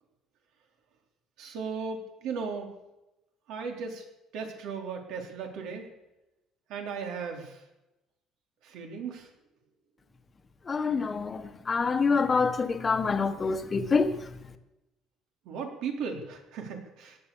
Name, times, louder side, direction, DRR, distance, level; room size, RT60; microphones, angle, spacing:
voice 1, 1.4-2.7 3.5-4.0 4.3-5.9 6.7-7.6 8.6-9.3 15.5-17.2, right 5 dB, 75° right, 3.9 m, -36 dB
voice 2, 10.7-14.1, left 4 dB, 20° left, 1.3 m, -26 dB
17.5 x 11.5 x 7.2 m
cardioid pair, 160°, 0 cm